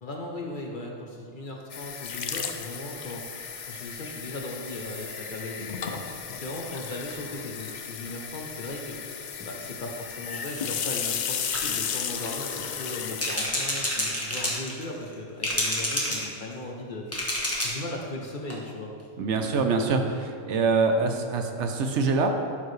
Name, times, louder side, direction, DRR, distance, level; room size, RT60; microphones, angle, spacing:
voice 1, 0.0-18.9, left 1 dB, 45° left, 0 dB, 0.8 m, -38 dB
sound 1, 1.7-13.5, left 7 dB, 80° left, 0.4 m, -34 dB
sound 2, 3.2-4.0 4.6-5.4 6.9-7.1 8.1-8.2 8.5-8.7 9.4-9.5 10.3-10.8 11.5-12.0 13.1-15.1 15.4-16.6 17.1-17.9 18.2-18.3 18.5-18.6, left 1 dB, 10° left, 1.0 m, -31 dB
voice 2, 19.2-22.3, right 4 dB, 65° right, 4 dB, 0.9 m, -24 dB
12.5 x 4.6 x 3.2 m, 2.3 s
omnidirectional pair, 1.3 m